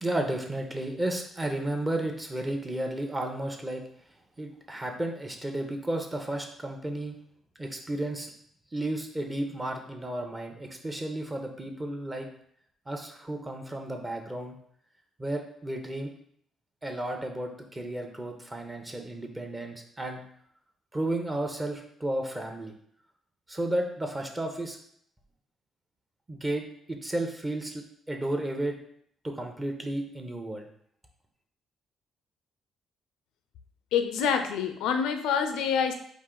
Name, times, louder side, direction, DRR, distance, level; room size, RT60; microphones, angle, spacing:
voice 1, 0.0-3.8 4.4-7.1 7.6-8.3 8.7-12.3 12.9-14.6 15.2-16.1 16.8-20.2 20.9-22.7 23.5-24.8 26.3-26.6 26.9-28.8 29.2-30.7, right 1 dB, 20° right, 3 dB, 0.7 m, -33 dB
voice 2, 33.9-35.9, left 7 dB, 90° left, 7 dB, 0.5 m, -26 dB
4.6 x 2.5 x 3.8 m, 0.65 s
cardioid pair, 85°, 0 cm